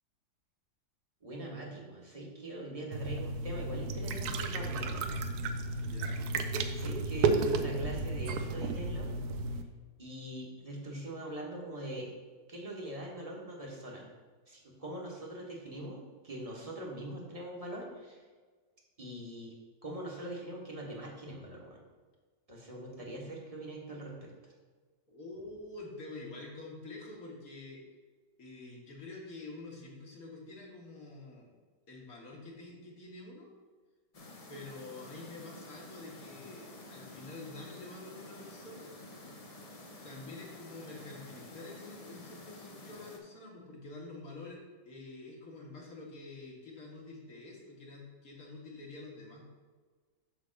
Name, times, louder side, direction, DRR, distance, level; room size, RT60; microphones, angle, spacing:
voice 1, 1.2-5.9 6.7-9.2 10.0-12.1 12.5-14.1 14.5-18.2 19.0-19.5 19.8-21.8 22.5-24.5, right 1 dB, 25° right, -2 dB, 1.3 m, -42 dB
sound 1, 2.9-9.6, right 3 dB, 75° right, 1.1 m, -33 dB
voice 2, 5.8-6.3 25.1-27.8 28.4-31.5 31.9-33.5 34.5-38.9 40.0-49.5, left 2 dB, 60° left, -2 dB, 2.0 m, -47 dB
sound 2, 34.1-43.2, left 2 dB, 35° left, 0.6 m, -50 dB
8.1 x 3.5 x 6.4 m, 1.5 s
omnidirectional pair, 1.8 m